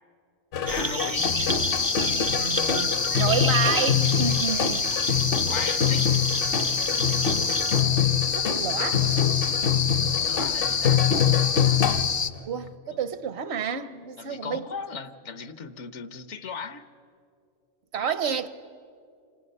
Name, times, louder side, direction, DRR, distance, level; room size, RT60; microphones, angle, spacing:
sound 1, 0.5-12.2, left 8 dB, 55° left, 0.8 m, -25 dB
voice 1, 0.6-1.3 4.7-6.1 10.1-11.0 12.9-13.0 14.2-16.9, left 5 dB, 75° left, 1.3 m, -37 dB
sound 2, 0.7-7.8, right 3 dB, 25° right, 0.5 m, -32 dB
sound 3, 1.1-12.3, left 6 dB, 35° left, 0.5 m, -27 dB
voice 2, 2.3-4.9 8.4-9.1 12.5-14.7 17.9-18.5, right 7 dB, 65° right, 1.0 m, -30 dB
28.0 x 26.0 x 5.5 m
omnidirectional pair, 1.2 m